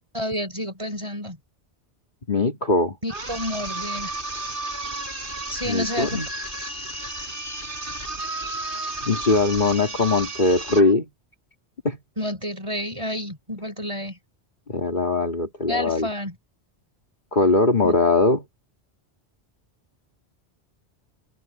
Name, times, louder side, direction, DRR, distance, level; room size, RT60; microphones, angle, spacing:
voice 1, 0.1-1.4 3.0-4.1 5.5-6.2 12.2-14.2 15.7-16.3 17.8-17.9, equal, 25° right, 6.6 m, -29 dB
voice 2, 2.3-3.0 5.6-6.3 9.0-11.1 11.8-12.0 14.7-16.1 17.3-18.4, left 2 dB, 45° left, 2.6 m, -21 dB
sound 1, 3.1-10.9, right 2 dB, 50° right, 5.0 m, -32 dB
omnidirectional pair, 1.1 m